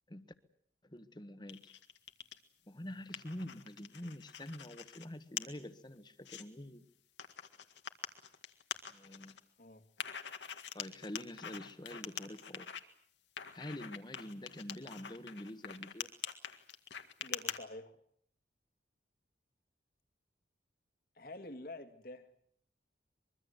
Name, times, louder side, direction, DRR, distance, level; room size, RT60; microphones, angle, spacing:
voice 1, 0.8-1.7 2.7-6.8 8.9-9.4 10.4-12.7 13.5-16.1, left 1 dB, 25° left, 10 dB, 1.4 m, -46 dB
sound 1, 1.5-2.4 2.8-5.0 5.4-5.5 6.0-6.4 7.2-9.4 10.0-12.8 13.4-17.6, left 8 dB, 80° left, 1.9 m, -44 dB
voice 2, 17.2-18.0 21.2-22.3, left 2 dB, 55° left, 9 dB, 2.1 m, -48 dB
24.5 x 22.5 x 8.0 m, 0.64 s
head